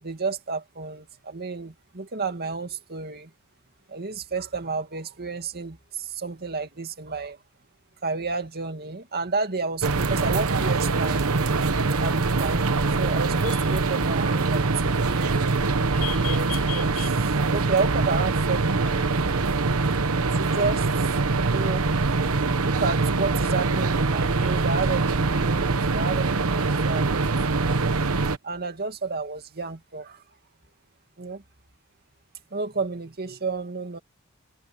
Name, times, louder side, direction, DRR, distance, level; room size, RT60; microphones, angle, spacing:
voice 1, 0.0-3.3 3.9-7.4 8.0-11.3 12.0-15.5 16.1-19.5 20.3-21.1 21.5-21.9 22.6-27.7 28.4-30.2 31.2-31.4 32.5-34.0, right 4 dB, 45° right, 2.3 m, -31 dB
sound 1, 9.8-28.4, right 3 dB, 80° right, 1.1 m, -23 dB
sound 2, 11.7-24.8, left 10 dB, 85° left, 7.5 m, -45 dB
head